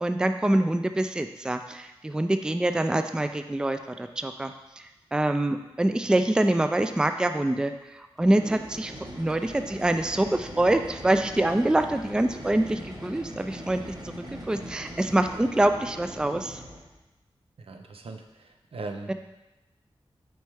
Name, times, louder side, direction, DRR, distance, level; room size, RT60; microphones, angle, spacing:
voice 1, 0.0-4.5 5.1-13.8 14.2-16.6 19.1-19.2, right 1 dB, 10° right, 8 dB, 0.3 m, -25 dB
sound 1, 8.2-17.0, equal, 40° right, 1.3 m, -41 dB
voice 2, 17.7-19.1, right 3 dB, 75° right, 4 dB, 0.6 m, -39 dB
6.2 x 4.4 x 3.4 m, 1.0 s
wide cardioid pair, 60°, 10 cm